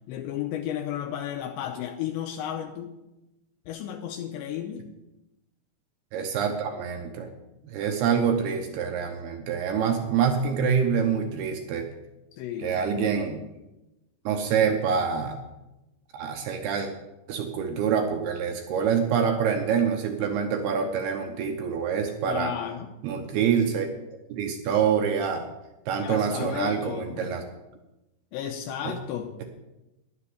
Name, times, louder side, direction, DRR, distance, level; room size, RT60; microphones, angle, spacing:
voice 1, 0.1-3.0 3.7-4.8 12.3-12.8 22.3-22.9 26.0-27.3 28.3-29.4, left 10 dB, 80° left, 4 dB, 2.8 m, -33 dB
voice 2, 6.1-7.3 7.6-11.9 12.6-13.4 14.3-15.4 16.1-16.9 17.3-22.5 23.0-23.9 24.3-25.5 25.9-27.4 28.8-28.9, right 7 dB, 70° right, 4 dB, 2.6 m, -26 dB
11.0 x 7.8 x 8.4 m, 0.97 s
omnidirectional pair, 5.4 m